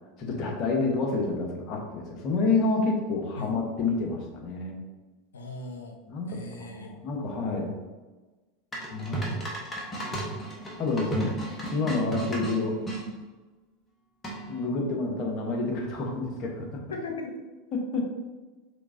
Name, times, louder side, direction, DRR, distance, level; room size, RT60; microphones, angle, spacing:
voice 1, 0.2-4.8 6.1-7.7 8.9-9.3 10.8-12.8 14.5-16.8 17.7-18.1, left 3 dB, 45° left, 0 dB, 1.1 m, -29 dB
voice 2, 5.3-6.0 6.3-7.0 16.9-17.4, left 3 dB, 85° left, 2 dB, 0.8 m, -38 dB
sound 1, 8.7-13.0 14.2-14.7, right 2 dB, 20° left, 1.3 m, -34 dB
5.0 x 3.6 x 2.7 m, 1.2 s
hypercardioid pair, 90°, 0 cm